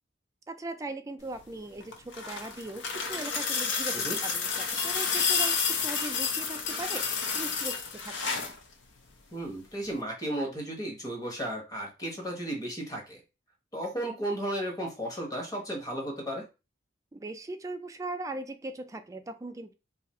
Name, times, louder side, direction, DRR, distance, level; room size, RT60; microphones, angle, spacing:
voice 1, 0.5-8.5 17.1-19.7, right 2 dB, 15° right, 7 dB, 0.4 m, -39 dB
sound 1, 1.8-8.6 9.9-10.0, left 5 dB, 75° left, 0.6 m, -30 dB
voice 2, 9.3-13.2 13.7-16.4, right 1 dB, 20° left, 0 dB, 1.1 m, -34 dB
2.7 x 2.4 x 4.1 m, 0.29 s
head